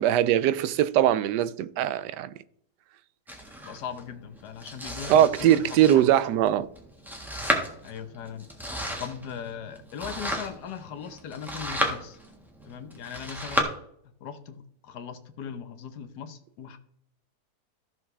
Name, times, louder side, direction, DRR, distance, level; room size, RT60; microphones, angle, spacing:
voice 1, 0.0-2.3 5.1-6.7, right 11 dB, 85° right, 1.2 m, -21 dB
Domestic sounds home sounds, 3.3-13.6, equal, ahead, 1.3 m, -34 dB
voice 2, 3.6-6.1 7.8-8.5 8.7-12.2 12.6-13.7 14.2-16.8, left 7 dB, 75° left, 1.5 m, -39 dB
14.5 x 6.3 x 3.3 m
omnidirectional pair, 1.8 m